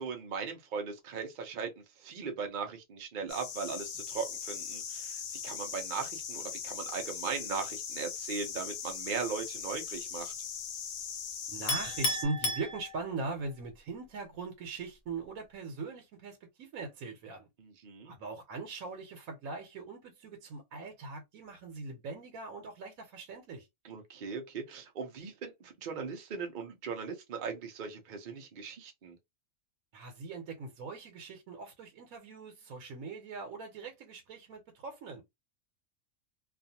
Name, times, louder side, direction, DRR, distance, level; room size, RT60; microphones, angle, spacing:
voice 1, 0.0-10.3 17.6-18.1 23.8-29.2, right 5 dB, 55° right, 0.5 m, -39 dB
sound 1, 3.3-12.2, left 7 dB, 55° left, 0.6 m, -40 dB
voice 2, 11.5-17.5 18.0-23.7 29.9-35.2, right 3 dB, 85° right, 1.1 m, -41 dB
Chink clink, 11.7-13.3, left 1 dB, 75° left, 1.1 m, -33 dB
2.4 x 2.4 x 2.7 m
omnidirectional pair, 1.4 m